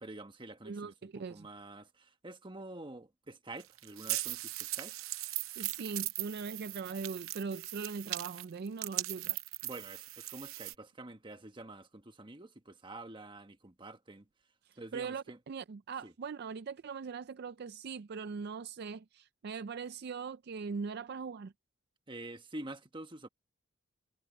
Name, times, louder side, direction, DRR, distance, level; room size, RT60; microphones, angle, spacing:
voice 1, 0.0-4.9 9.6-14.3 14.8-15.4 16.0-16.1 22.1-23.3, right 2 dB, 25° right, 1.3 m, -47 dB
voice 2, 0.6-1.5 5.6-9.4 14.6-21.5, right 5 dB, 50° right, 0.4 m, -41 dB
sound 1, 3.6-10.7, right 16 dB, 80° right, 0.7 m, -39 dB
head